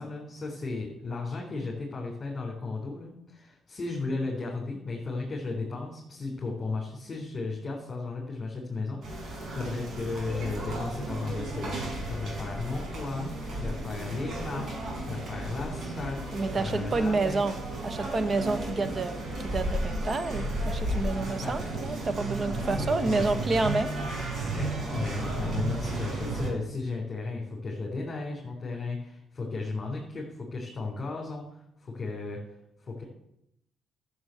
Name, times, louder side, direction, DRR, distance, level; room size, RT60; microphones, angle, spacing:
voice 1, 0.0-11.8 12.1-16.2 16.6-17.4 21.4-21.6 22.5-23.5 24.5-32.4 32.8-33.0, left 3 dB, 35° left, -2 dB, 3.7 m, -35 dB
sound 1, 9.0-26.5, right 2 dB, 55° right, 5.0 m, -34 dB
voice 2, 16.3-17.5 17.8-23.9, right 3 dB, 40° right, 12 dB, 1.2 m, -29 dB
12.5 x 7.2 x 7.8 m, 0.78 s
cardioid pair, 90°, 0 cm